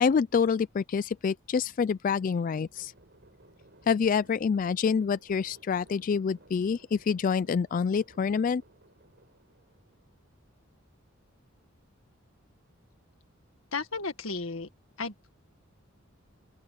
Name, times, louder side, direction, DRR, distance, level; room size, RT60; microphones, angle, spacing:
voice 1, 0.0-2.9 3.9-8.6, left 6 dB, 40° left, 0.3 m, -27 dB
sound 1, 2.2-10.5, right 2 dB, 55° right, 7.4 m, -59 dB
voice 2, 13.7-14.7 15.0-15.3, left 4 dB, 80° left, 1.8 m, -34 dB
open air
head